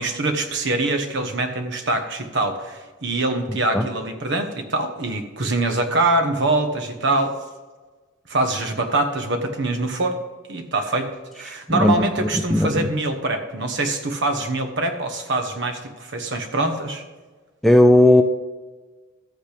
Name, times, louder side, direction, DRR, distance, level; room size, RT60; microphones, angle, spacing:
voice 1, 0.0-7.4 8.3-10.2 10.5-11.1 11.4-17.0, right 2 dB, 60° right, 6 dB, 1.1 m, -24 dB
voice 2, 12.5-12.9 17.6-18.2, left 1 dB, ahead, 6 dB, 0.4 m, -15 dB
13.5 x 8.3 x 3.4 m, 1.3 s
head